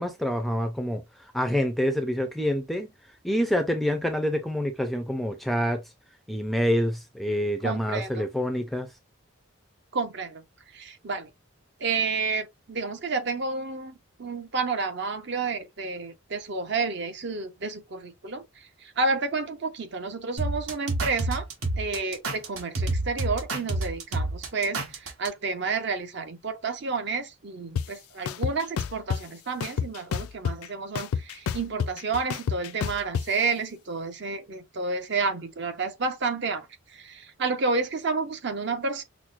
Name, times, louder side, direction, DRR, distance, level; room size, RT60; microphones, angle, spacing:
voice 1, 0.0-2.9 3.2-5.8 6.3-8.9, equal, ahead, 0.3 m, -27 dB
voice 2, 7.6-8.3 9.9-10.4 10.7-11.3 11.8-18.4 18.8-21.5 21.8-36.7 36.9-39.0, right 4 dB, 55° right, 0.6 m, -30 dB
sound 1, 20.4-25.3, right 2 dB, 85° right, 1.1 m, -28 dB
sound 2, 27.8-27.9 28.3-29.2 29.6-30.7 31.0-33.2, left 7 dB, 90° left, 0.4 m, -28 dB
5.9 x 2.0 x 2.4 m
head